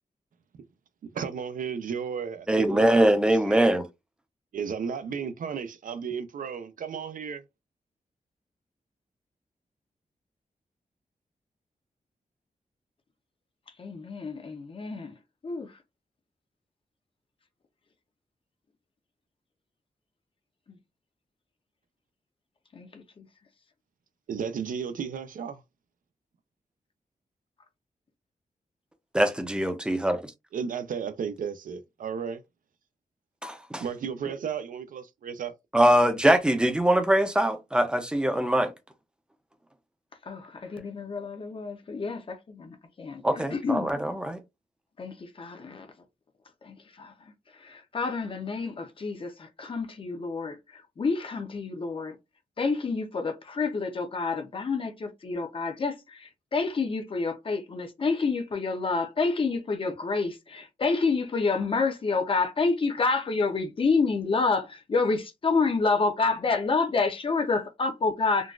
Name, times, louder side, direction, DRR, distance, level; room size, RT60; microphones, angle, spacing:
voice 1, 1.0-3.7 4.5-7.4 24.3-25.6 30.5-32.4 33.8-35.5, right 6 dB, 75° right, 0.5 m, -34 dB
voice 2, 2.5-3.8 29.2-30.2 33.4-33.8 35.7-38.7 43.2-44.4, right 1 dB, 5° right, 0.5 m, -22 dB
voice 3, 13.8-15.1 15.4-15.7 22.7-23.2 40.3-43.9 45.0-45.9 46.6-47.1 47.6-52.2 52.6-68.5, left 4 dB, 40° left, 0.6 m, -28 dB
3.8 x 2.3 x 2.3 m
wide cardioid pair, 165°, 14 cm